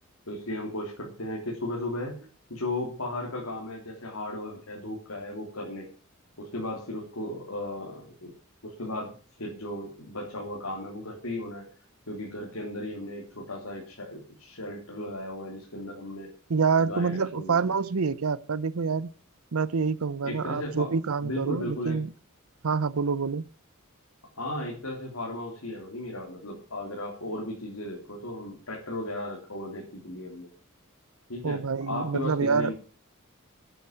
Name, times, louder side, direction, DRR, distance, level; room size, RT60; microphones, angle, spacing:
voice 1, 0.3-2.2 2.5-5.9 6.4-8.3 8.6-11.7 12.1-16.3 16.8-17.6 20.2-20.9 21.2-22.0 24.4-30.5 31.3-31.6 31.9-32.7, left 1 dB, 80° left, 3.7 m, -35 dB
voice 2, 16.5-19.1 19.5-22.1 22.6-23.4 31.4-32.7, right 5 dB, 85° right, 0.7 m, -27 dB
11.5 x 9.2 x 7.5 m
head